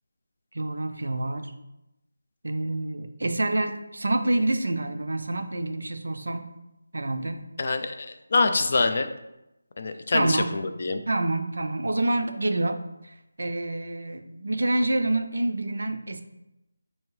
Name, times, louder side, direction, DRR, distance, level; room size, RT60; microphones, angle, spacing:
voice 1, 0.5-1.5 2.4-6.5 6.9-7.5 10.1-10.6 11.1-16.2, right 2 dB, 75° right, 8 dB, 0.4 m, -27 dB
voice 2, 7.6-9.1 9.8-11.0, left 3 dB, 40° left, 8 dB, 0.3 m, -25 dB
4.7 x 2.6 x 3.1 m, 0.90 s
figure-of-eight pair, 175°, 0 cm